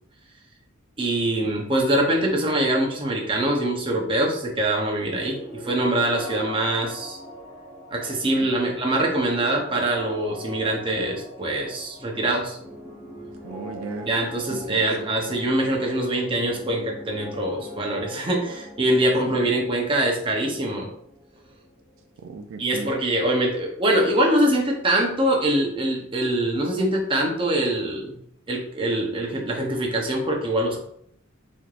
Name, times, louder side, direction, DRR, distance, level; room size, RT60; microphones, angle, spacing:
voice 1, 1.0-7.2 7.9-12.6 14.1-20.9 22.6-28.2 28.5-30.8, right 1 dB, 25° right, -1 dB, 0.8 m, -24 dB
sound 1, 5.1-22.7, equal, 5° right, 1.5 m, -41 dB
voice 2, 8.4-8.8 13.4-14.1 14.5-15.5 19.3-19.4 22.2-22.9, right 4 dB, 75° right, 6 dB, 0.4 m, -38 dB
4.1 x 3.2 x 2.4 m, 0.68 s
head